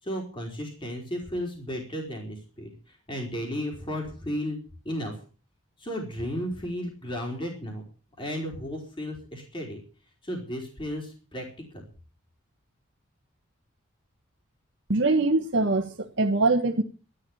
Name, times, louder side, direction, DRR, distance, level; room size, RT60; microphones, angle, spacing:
voice 1, 0.0-4.6 4.8-5.2 5.8-7.8 8.2-9.8 10.2-11.4 11.7-11.8, equal, 25° left, 4.0 m, -34 dB
voice 2, 14.9-16.8, right 2 dB, 60° right, 1.3 m, -23 dB
13.0 x 11.5 x 7.1 m
head